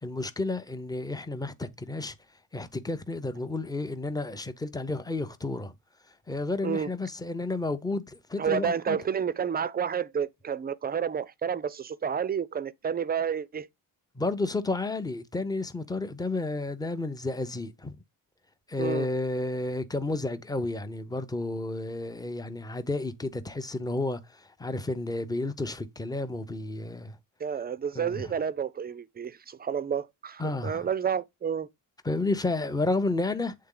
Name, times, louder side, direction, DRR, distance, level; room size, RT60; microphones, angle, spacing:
voice 1, 0.0-2.2 2.5-5.7 6.3-9.0 14.1-17.9 18.7-27.2 27.9-28.3 30.4-30.9 32.0-33.5, left 2 dB, 10° left, 0.7 m, -31 dB
voice 2, 8.4-13.7 18.8-19.1 27.4-31.7, right 7 dB, 25° right, 0.4 m, -30 dB
8.5 x 3.8 x 3.8 m
cardioid pair, 130°, 39 cm